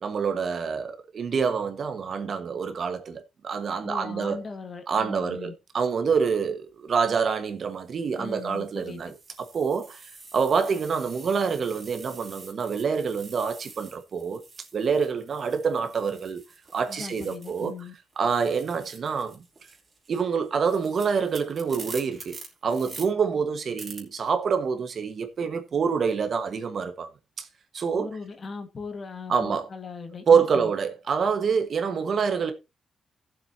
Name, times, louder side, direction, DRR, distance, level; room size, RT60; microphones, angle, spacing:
voice 1, 0.0-4.4 4.9-9.1 9.4-14.4 14.7-16.4 16.7-17.7 18.2-19.4 20.1-22.4 22.6-27.1 27.4-27.5 27.7-28.1 29.3-29.7 30.3-32.5, right 6 dB, 45° right, 1.3 m, -26 dB
voice 2, 3.8-5.5 8.2-9.0 16.9-17.9 27.9-30.7, left 4 dB, 35° left, 1.6 m, -39 dB
sound 1, 6.7-6.9 7.7-17.9 18.1-23.1 23.8-24.0, right 3 dB, 25° right, 2.9 m, -47 dB
17.0 x 7.6 x 2.7 m
wide cardioid pair, 180°, 0 cm